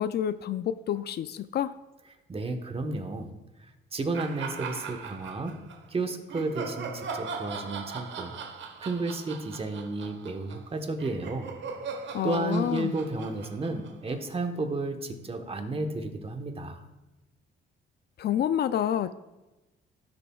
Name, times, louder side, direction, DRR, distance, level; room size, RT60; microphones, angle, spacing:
voice 1, 0.0-1.7 12.1-12.9 18.2-19.1, left 10 dB, 55° left, 14 dB, 0.4 m, -28 dB
voice 2, 2.3-3.3 3.9-5.6 5.9-8.3 8.8-11.6 12.2-16.8, right 2 dB, 30° right, 6 dB, 1.1 m, -32 dB
sound 1, 4.1-5.8 6.3-14.6, right 5 dB, 65° right, 1.1 m, -39 dB
16.5 x 6.9 x 2.3 m, 1.1 s
cardioid pair, 90°, 20 cm